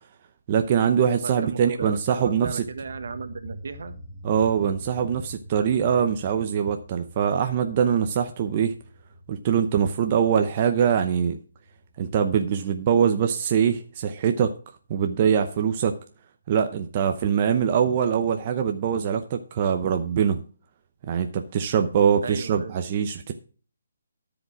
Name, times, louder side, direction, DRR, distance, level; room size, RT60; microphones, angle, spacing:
voice 1, 0.5-2.6 4.2-8.7 9.3-11.4 12.0-14.5 14.9-15.9 16.5-20.4 21.1-23.3, right 8 dB, 30° right, 6 dB, 0.8 m, -23 dB
voice 2, 1.2-4.0 22.2-22.7, right 4 dB, 65° right, 11 dB, 1.4 m, -35 dB
sound 1, 2.2-13.6, equal, 10° right, 1.7 m, -46 dB
13.0 x 5.2 x 6.0 m, 0.39 s
hypercardioid pair, 165°, 0 cm